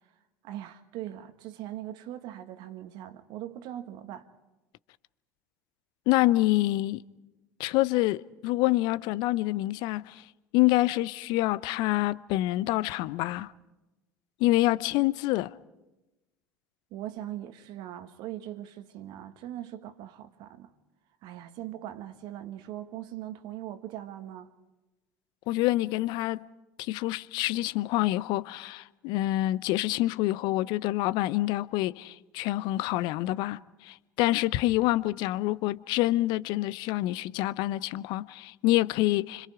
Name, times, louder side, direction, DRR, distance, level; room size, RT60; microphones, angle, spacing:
voice 1, 0.4-4.3 16.9-20.7 21.2-24.5, right 12 dB, 55° right, 1.7 m, -40 dB
voice 2, 6.1-7.0 7.6-10.2 10.5-13.5 14.4-15.5 25.5-26.5 26.8-39.5, left 17 dB, 55° left, 0.7 m, -27 dB
29.0 x 26.0 x 4.8 m
figure-of-eight pair, 65°, 9 cm